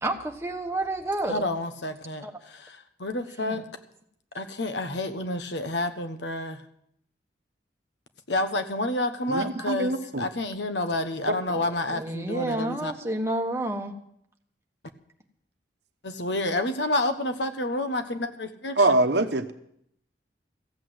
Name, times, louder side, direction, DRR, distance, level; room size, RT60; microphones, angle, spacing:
voice 1, 0.0-1.4 2.2-2.3 3.4-3.6 9.6-9.7 11.5-13.9, right 1 dB, 15° right, 3 dB, 1.4 m, -30 dB
voice 2, 1.3-3.7 4.3-6.6 8.3-12.9 16.0-18.9, left 2 dB, 75° left, 8 dB, 1.2 m, -29 dB
voice 3, 9.3-10.2 18.8-19.5, right 2 dB, 65° right, 8 dB, 1.0 m, -23 dB
15.0 x 8.4 x 7.8 m, 0.72 s
head